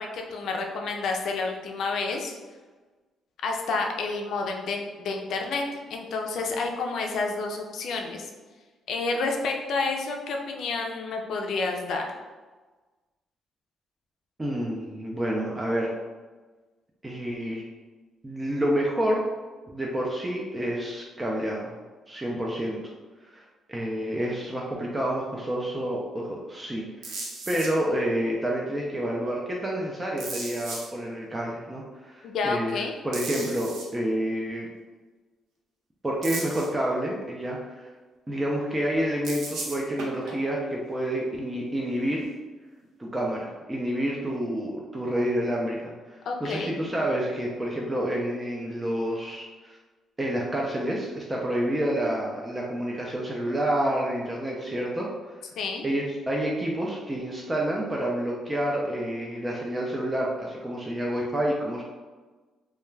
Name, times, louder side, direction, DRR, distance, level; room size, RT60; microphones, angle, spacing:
voice 1, 0.0-2.3 3.4-5.6 5.9-8.3 8.9-12.1 32.2-32.9 46.3-46.7 55.6-55.8, left 3 dB, 70° left, 2 dB, 0.4 m, -29 dB
voice 2, 14.4-16.0 17.0-17.6 18.2-19.2 19.7-21.7 22.1-22.8 23.3-34.7 36.0-37.8 38.3-42.2 43.0-49.8 50.2-55.1 55.8-61.8, right 1 dB, 15° right, -3 dB, 0.4 m, -29 dB
sound 1, 27.0-27.7 30.2-30.9 33.1-33.9 36.2-36.7 39.2-40.4 42.8-42.9, right 2 dB, 80° right, 0.6 m, -35 dB
2.3 x 2.2 x 3.1 m, 1.3 s
cardioid pair, 90°, 0 cm